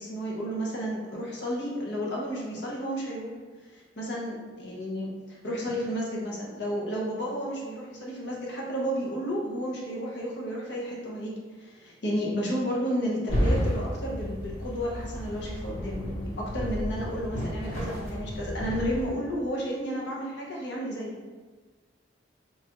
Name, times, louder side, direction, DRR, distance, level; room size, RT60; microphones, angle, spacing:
voice 1, 0.0-3.3 3.7-21.1, equal, 60° left, -4 dB, 0.7 m, -32 dB
sound 1, 13.3-19.1, equal, 35° left, 0.9 m, -31 dB
3.1 x 2.3 x 2.8 m, 1.4 s
head